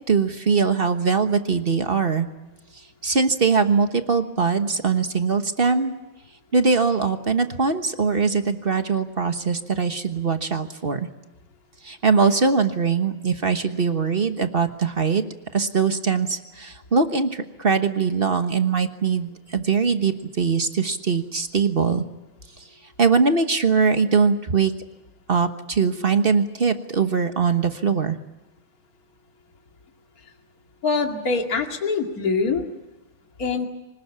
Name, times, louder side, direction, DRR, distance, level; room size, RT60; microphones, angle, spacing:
voice 1, 0.1-2.3 3.0-5.9 6.5-11.0 11.8-15.2 15.5-22.0 23.0-24.7 25.3-28.2, right 5 dB, 35° right, 8 dB, 1.1 m, -21 dB
voice 2, 30.8-32.6 33.4-33.7, left 4 dB, 40° left, 3 dB, 2.6 m, -24 dB
25.0 x 19.5 x 8.5 m, 1.1 s
omnidirectional pair, 2.4 m